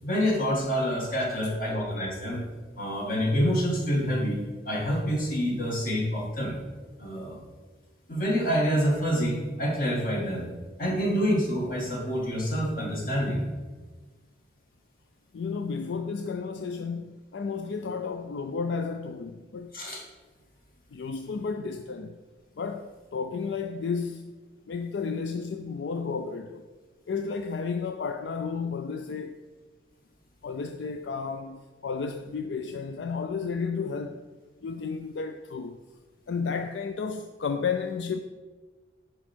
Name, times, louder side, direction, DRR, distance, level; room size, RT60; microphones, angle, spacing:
voice 1, 0.0-2.4 2.8-4.4 4.7-6.5 7.0-7.4 8.1-10.5 10.8-13.4 19.7-20.0, equal, 50° left, 2.1 m, -27 dB
voice 2, 15.3-19.7 20.9-22.2 22.6-24.4 24.7-26.6 27.1-29.4 30.4-34.2 34.6-35.8 36.3-38.2, left 5 dB, 75° left, 0.4 m, -32 dB
10.0 x 5.2 x 4.5 m
head